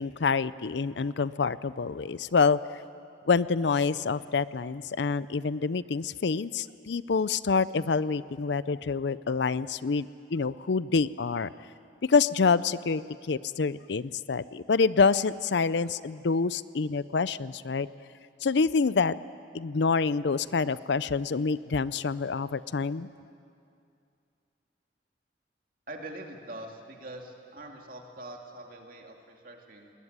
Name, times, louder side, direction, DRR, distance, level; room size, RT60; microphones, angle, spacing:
voice 1, 0.0-2.6 3.3-11.5 12.0-17.9 18.4-19.1 19.5-23.1, left 4 dB, 70° left, 17 dB, 0.5 m, -27 dB
voice 2, 25.9-29.9, right 1 dB, 50° right, 2 dB, 2.7 m, -43 dB
20.5 x 20.0 x 9.7 m, 2.5 s
head